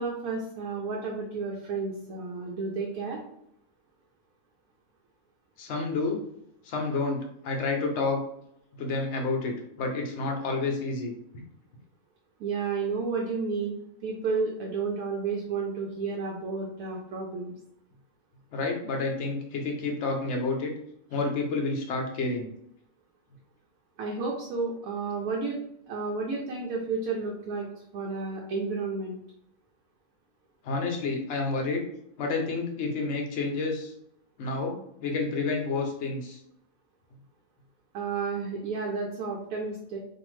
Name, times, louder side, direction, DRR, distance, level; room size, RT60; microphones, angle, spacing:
voice 1, 0.0-3.2 12.4-17.5 24.0-25.6 25.9-29.1 37.9-40.0, right 4 dB, 75° right, -1 dB, 1.0 m, -31 dB
voice 2, 5.6-6.2 6.6-8.2 8.8-11.4 18.5-20.7 21.1-22.5 30.6-31.8 32.2-33.9 34.4-36.4, left 3 dB, 60° left, 2 dB, 0.8 m, -29 dB
2.7 x 2.5 x 3.1 m, 0.72 s
omnidirectional pair, 1.6 m